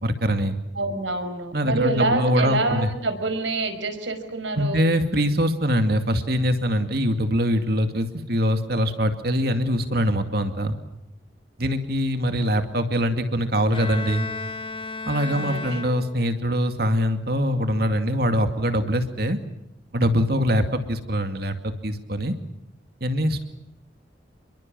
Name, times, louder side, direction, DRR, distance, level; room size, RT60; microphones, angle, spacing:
voice 1, 0.0-0.6 1.5-2.9 4.6-10.8 11.6-14.3 15.1-19.4 19.9-22.3 23.0-23.4, equal, 55° right, 7 dB, 2.3 m, -23 dB
voice 2, 0.8-4.8 15.3-15.8, right 2 dB, 85° right, 8 dB, 5.5 m, -26 dB
Bowed string instrument, 13.7-16.4, left 3 dB, 30° left, 1.4 m, -34 dB
30.0 x 22.5 x 7.6 m, 0.87 s
head